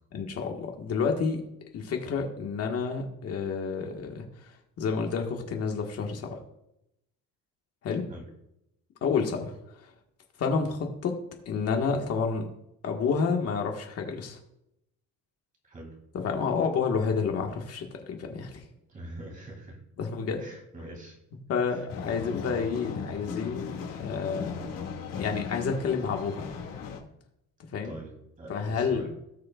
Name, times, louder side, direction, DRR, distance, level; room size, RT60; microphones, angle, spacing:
voice 1, 0.1-1.4 1.7-4.2 4.8-6.4 7.8-8.1 9.0-9.5 10.4-11.2 11.4-12.5 12.8-14.4 16.1-18.6 20.0-20.5 21.5-24.7 25.2-26.5 27.7-28.0 28.5-29.1, left 5 dB, 45° left, 2 dB, 1.6 m, -29 dB
voice 2, 18.7-19.8 20.4-21.2 21.7-21.8 27.8-29.1, right 1 dB, 25° right, 0 dB, 2.9 m, -44 dB
sound 1, 21.9-27.0, left 6 dB, 75° left, 2.3 m, -37 dB
18.0 x 6.4 x 2.4 m, 0.81 s
cardioid pair, 175°, 33 cm